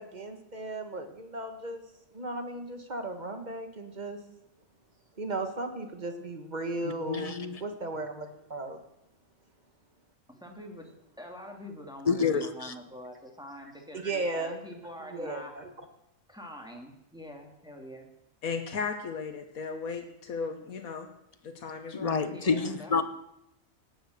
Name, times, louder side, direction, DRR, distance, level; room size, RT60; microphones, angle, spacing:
voice 1, 0.0-1.8 2.1-4.2 5.2-8.8 13.9-14.6 15.0-15.7, right 2 dB, 30° right, 6 dB, 1.7 m, -36 dB
voice 2, 7.1-7.6 12.1-12.7 21.9-23.0, left 5 dB, 30° left, 10 dB, 1.0 m, -28 dB
voice 3, 10.3-10.9 11.2-15.5 16.3-18.1 21.8-21.9 22.2-23.0, equal, 5° right, 1 dB, 2.5 m, -45 dB
voice 4, 18.4-21.1 21.4-22.3, left 5 dB, 85° left, 5 dB, 1.7 m, -36 dB
17.5 x 10.5 x 6.6 m, 0.83 s
omnidirectional pair, 1.4 m